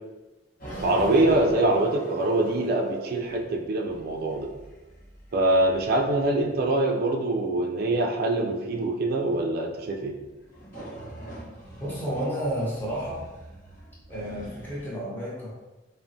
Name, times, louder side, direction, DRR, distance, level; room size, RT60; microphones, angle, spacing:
sound 1, 0.6-6.9 10.4-14.9, right 2 dB, 50° left, 0.9 m, -40 dB
voice 1, 0.8-4.5 5.3-10.1, right 2 dB, 55° right, 2 dB, 0.4 m, -24 dB
voice 2, 11.8-13.2 14.1-15.5, equal, 10° left, -7 dB, 0.9 m, -31 dB
3.3 x 2.1 x 2.6 m, 1.1 s
head